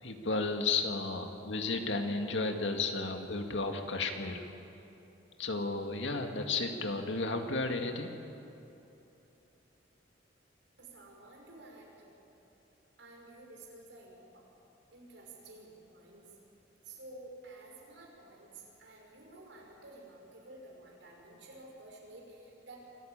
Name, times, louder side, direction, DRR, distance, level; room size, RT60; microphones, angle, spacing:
voice 1, 0.0-4.4 5.4-8.1, left 3 dB, 80° left, 4 dB, 2.1 m, -33 dB
voice 2, 10.8-12.1 13.0-14.5 14.9-16.3 16.8-22.8, right 2 dB, 80° right, -1 dB, 5.9 m, -52 dB
25.5 x 14.5 x 8.9 m, 3.0 s
head